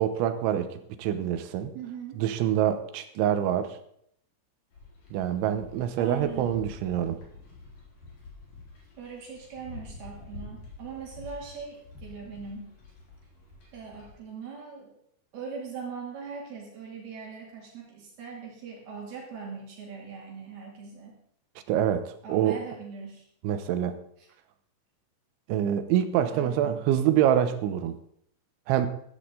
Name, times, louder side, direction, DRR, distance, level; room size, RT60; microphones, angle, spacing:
voice 1, 0.0-1.7 2.2-3.8 5.1-7.2 21.7-22.6 23.4-24.0 25.5-28.0 28.7-28.9, right 10 dB, 85° right, 10 dB, 3.3 m, -26 dB
voice 2, 1.7-2.2 6.0-6.6 9.0-12.7 13.7-14.9 15.3-21.2 22.2-23.2 24.2-24.3 26.3-26.8, right 5 dB, 60° right, -2 dB, 4.3 m, -41 dB
sound 1, 4.7-14.2, left 3 dB, 45° left, 5.4 m, -47 dB
15.0 x 13.0 x 3.9 m, 0.70 s
omnidirectional pair, 5.4 m